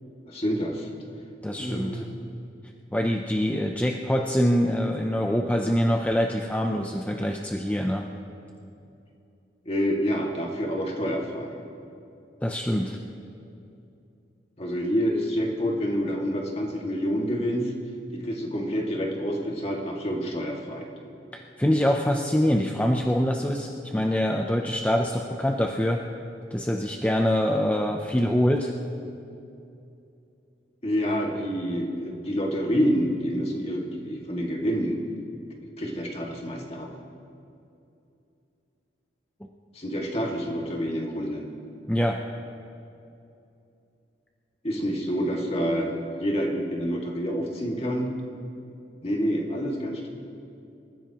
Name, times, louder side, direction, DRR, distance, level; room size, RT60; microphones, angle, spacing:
voice 1, 0.3-0.9 1.6-2.1 9.7-11.5 14.6-17.7 18.1-20.9 30.8-35.0 35.8-36.9 39.7-41.4 44.6-45.9 46.2-48.1 49.0-50.1, equal, 35° left, 0 dB, 2.1 m, -27 dB
voice 2, 1.4-2.0 2.9-8.1 12.4-13.0 21.3-26.0 26.5-28.7 41.9-42.2, equal, 10° left, 2 dB, 0.6 m, -24 dB
27.0 x 15.0 x 3.0 m, 2.7 s
head